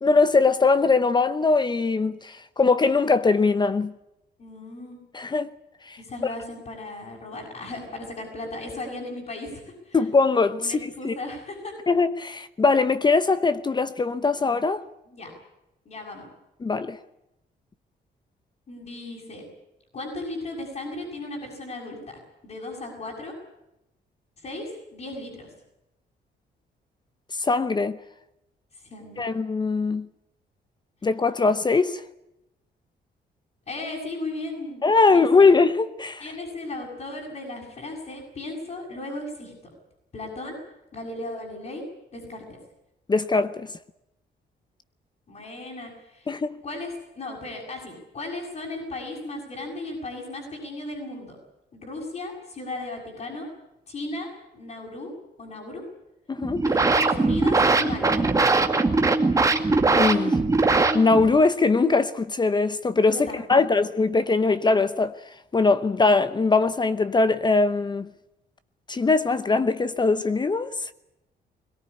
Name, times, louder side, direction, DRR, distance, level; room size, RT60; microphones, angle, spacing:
voice 1, 0.0-3.9 5.1-5.5 5.9-6.0 9.9-11.1 11.9-14.8 16.6-17.0 27.4-28.0 29.2-30.1 31.0-32.0 34.8-36.2 43.1-43.7 46.3-46.6 56.3-56.6 59.9-60.4 60.9-65.2 65.5-68.1 68.9-70.7, left 4 dB, 25° left, 0.9 m, -21 dB
voice 2, 4.4-5.0 6.0-10.0 10.6-11.7 15.1-15.3 15.8-16.3 18.7-19.4 19.9-23.3 24.4-25.5 28.8-29.3 33.7-35.5 36.2-39.5 40.1-40.6 40.9-41.8 42.1-42.4 45.3-46.3 46.6-51.4 51.7-53.5 53.9-54.3 54.5-55.1 55.4-55.8 56.7-58.2 63.1-63.8, left 2 dB, 45° left, 7.0 m, -36 dB
sound 1, 56.4-61.4, right 3 dB, 20° right, 2.0 m, -21 dB
21.5 x 18.0 x 9.9 m
cardioid pair, 130°, 18 cm